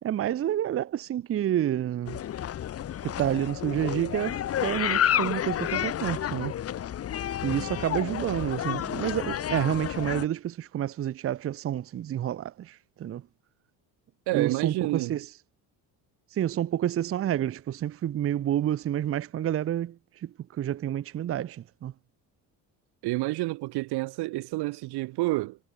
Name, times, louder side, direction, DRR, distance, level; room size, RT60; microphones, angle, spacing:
voice 1, 0.0-2.2 3.0-6.5 7.4-13.2 14.3-15.3 16.3-21.9, right 11 dB, 35° right, 0.8 m, -29 dB
sound 1, 2.1-10.3, left 11 dB, 35° left, 1.2 m, -30 dB
voice 2, 14.3-15.2 23.0-25.6, right 20 dB, 75° right, 1.4 m, -29 dB
cardioid pair, 160°, 39 cm